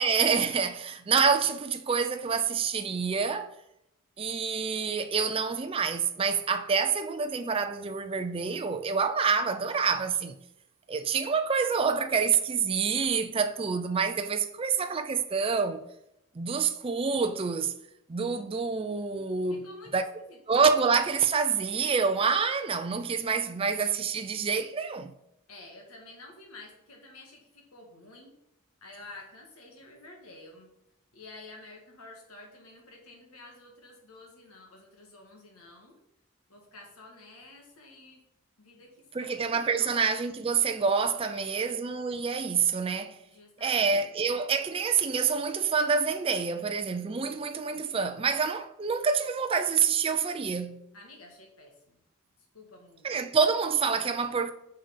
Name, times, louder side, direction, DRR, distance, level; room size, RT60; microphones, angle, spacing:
voice 1, 0.0-3.5 4.2-10.4 10.9-15.8 16.4-17.7 18.1-20.1 20.5-25.1 39.1-43.2 43.6-50.8 53.0-54.5, right 5 dB, 25° right, 0.4 m, -27 dB
voice 2, 19.5-20.4 25.5-28.3 28.8-30.7 31.1-36.0 36.5-38.2 38.6-40.0 41.3-41.7 43.3-44.1 50.9-52.0 52.5-53.2, left 2 dB, 85° left, 1.7 m, -50 dB
5.5 x 5.4 x 5.2 m
head